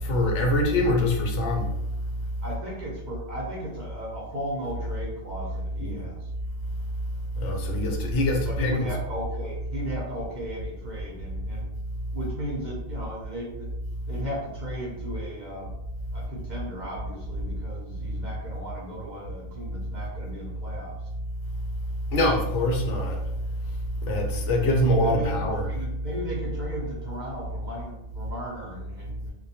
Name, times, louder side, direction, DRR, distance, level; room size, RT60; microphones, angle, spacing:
voice 1, 0.0-1.7 5.8-6.0 7.4-8.9 22.1-23.3 24.0-25.6, left 1 dB, 80° left, 1 dB, 0.9 m, -24 dB
voice 2, 2.4-6.3 8.5-11.7 12.1-13.7 14.1-15.7 16.1-21.0 25.0-29.3, equal, 50° right, -4 dB, 0.6 m, -36 dB
2.2 x 2.1 x 2.7 m, 0.87 s
omnidirectional pair, 1.2 m